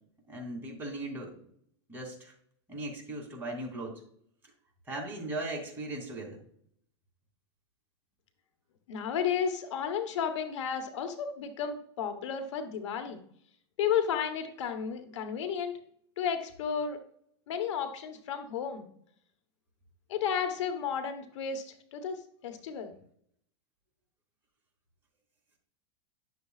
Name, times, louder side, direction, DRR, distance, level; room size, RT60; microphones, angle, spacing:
voice 1, 0.3-1.3 1.9-2.3 2.7-4.0 4.9-6.4, right 1 dB, 15° right, -2 dB, 3.0 m, -38 dB
voice 2, 8.9-13.2 13.8-15.8 16.2-17.0 17.5-18.9 20.1-22.9, left 7 dB, 80° left, 8 dB, 1.2 m, -33 dB
11.0 x 6.8 x 2.5 m, 0.64 s
supercardioid pair, 135°, 15 cm